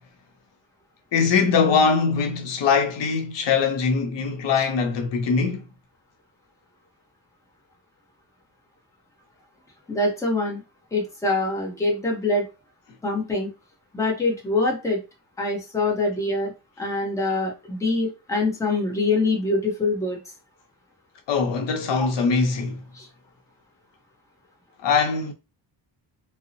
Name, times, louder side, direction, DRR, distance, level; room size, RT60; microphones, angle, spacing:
voice 1, 1.1-5.7 21.3-22.8 24.8-25.3, left 5 dB, 80° left, 0.7 m, -22 dB
voice 2, 9.9-10.6 10.9-12.5 13.0-13.5 13.9-15.0 15.4-16.5 16.8-20.2 22.0-22.1 22.9-23.1, left 2 dB, 5° left, 0.7 m, -24 dB
2.7 x 2.0 x 2.6 m
wide cardioid pair, 135°, 42 cm